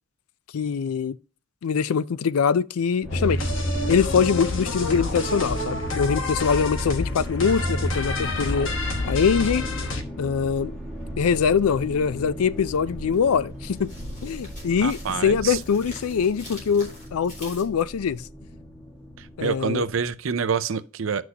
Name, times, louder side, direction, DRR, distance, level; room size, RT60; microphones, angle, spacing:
voice 1, 0.5-1.1 1.6-3.5 3.9-8.7 9.1-9.6 10.2-10.7 11.2-13.9 14.2-18.2 19.4-19.9, left 6 dB, 80° left, 0.4 m, -23 dB
sound 1, 3.0-20.1, equal, ahead, 1.7 m, -37 dB
sound 2, 3.1-10.0, left 2 dB, 55° left, 1.1 m, -28 dB
sound 3, 10.6-17.6, left 1 dB, 35° left, 4.0 m, -43 dB
voice 2, 14.8-15.6 19.2-21.2, right 6 dB, 65° right, 0.5 m, -27 dB
11.0 x 6.1 x 2.8 m
head